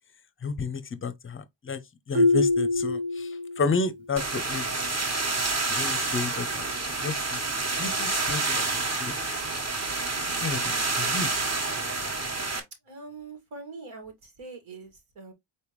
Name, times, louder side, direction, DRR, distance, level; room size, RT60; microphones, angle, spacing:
voice 1, 0.4-1.8 2.1-4.8 5.7-6.7 7.0-7.4 7.8-9.1 10.4-11.3, left 4 dB, 25° left, 0.5 m, -32 dB
Marimba xylophone, 2.1-3.9, left 2 dB, 65° right, 1.4 m, -24 dB
sound 1, 4.2-12.6, right 3 dB, 30° right, 1.3 m, -28 dB
voice 2, 12.8-15.3, right 3 dB, 85° right, 2.2 m, -43 dB
4.4 x 3.4 x 3.0 m
cardioid pair, 125°, 49 cm